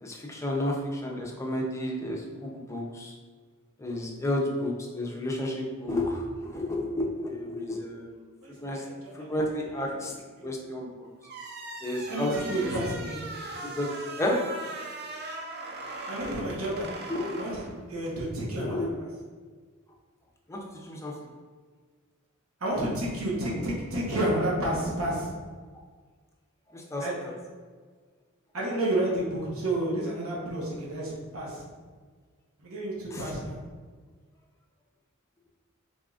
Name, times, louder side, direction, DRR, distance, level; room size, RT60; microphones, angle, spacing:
voice 1, 0.0-3.1 3.8-8.2 8.6-8.8 9.1-10.1 10.4-11.1 11.8-12.7 13.6-13.9 14.2-14.4 17.1-17.4 17.9-18.0 18.6-18.9 20.5-21.1 26.7-27.3 33.1-33.3, left 1 dB, 15° left, -1 dB, 0.5 m, -31 dB
voice 2, 8.4-9.5 9.8-10.0 10.4-10.5 12.1-13.2 16.1-16.9 17.4-17.6 17.9-19.1 22.6-25.3 27.0-27.1 28.5-31.6 32.6-33.6, right 1 dB, 75° right, -5 dB, 1.1 m, -30 dB
sound 1, 11.2-18.2, right 2 dB, 50° right, 0.5 m, -39 dB
4.1 x 3.6 x 2.4 m, 1.5 s
head